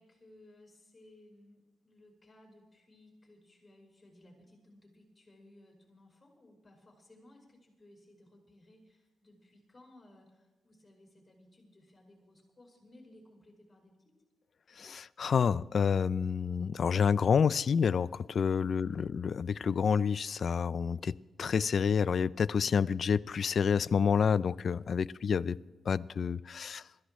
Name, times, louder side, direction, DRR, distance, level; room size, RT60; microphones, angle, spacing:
voice 1, 0.0-14.1, left 1 dB, 15° left, 0 dB, 5.6 m, -59 dB
voice 2, 14.8-21.1 21.4-25.6 25.9-26.8, left 6 dB, 45° left, 17 dB, 0.4 m, -28 dB
26.0 x 14.5 x 3.1 m, 1.2 s
cardioid pair, 135°, 0 cm